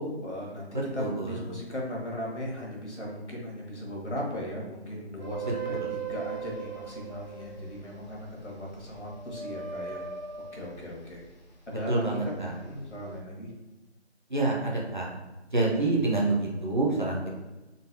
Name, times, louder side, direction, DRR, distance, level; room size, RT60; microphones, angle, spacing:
voice 1, 0.0-10.0 10.5-11.2 11.7-13.5, left 1 dB, 85° left, -2 dB, 1.3 m, -37 dB
voice 2, 1.0-1.4 5.8-5.9 11.9-12.5 14.3-15.1 15.5-17.3, right 2 dB, 45° right, -3 dB, 0.6 m, -27 dB
sound 1, 5.2-11.9 12.3-13.2, right 6 dB, 40° left, 0.5 m, -39 dB
3.8 x 2.2 x 2.7 m, 1.1 s
figure-of-eight pair, 175°, 34 cm